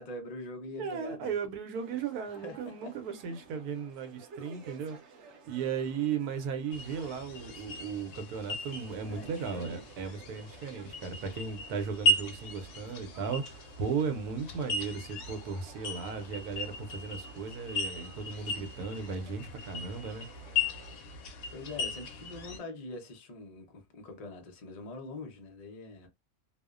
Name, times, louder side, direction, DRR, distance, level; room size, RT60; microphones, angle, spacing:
voice 1, 0.0-1.3 2.4-2.9 9.0-10.0 21.1-21.2 21.5-26.1, left 2 dB, 55° left, 0.4 m, -44 dB
voice 2, 0.8-5.0 5.5-20.3, right 6 dB, 85° right, 1.1 m, -36 dB
sound 1, 1.7-21.0, right 4 dB, 60° right, 0.8 m, -55 dB
sound 2, 6.7-22.6, left 2 dB, 75° left, 1.0 m, -36 dB
2.7 x 2.0 x 2.3 m
omnidirectional pair, 1.6 m